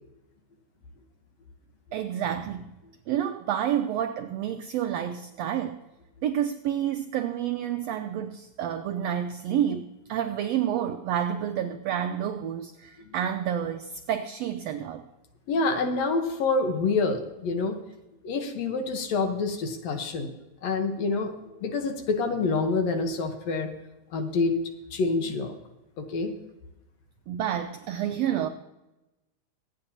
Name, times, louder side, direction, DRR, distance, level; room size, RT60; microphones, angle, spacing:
voice 1, 1.9-2.6 3.1-5.8 6.2-15.0 27.3-28.5, right 10 dB, 85° right, 8 dB, 1.4 m, -29 dB
voice 2, 15.5-17.8 18.2-20.3 20.6-21.3 21.6-23.7 24.1-24.6 24.9-25.5 26.0-26.3, left 3 dB, 65° left, 5 dB, 2.1 m, -27 dB
24.5 x 8.8 x 2.8 m, 1.0 s
omnidirectional pair, 3.5 m